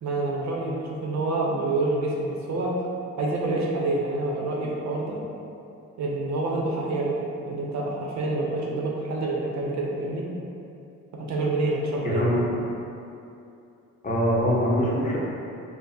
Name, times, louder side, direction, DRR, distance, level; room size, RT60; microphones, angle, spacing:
voice 1, 0.0-2.8 3.2-5.2 6.0-10.3 11.1-12.3, right 2 dB, 65° right, -3 dB, 0.7 m, -27 dB
voice 2, 12.0-12.5 14.0-15.2, equal, 25° left, -6 dB, 0.8 m, -23 dB
3.5 x 2.1 x 4.1 m, 2.7 s
cardioid pair, 90°, 30 cm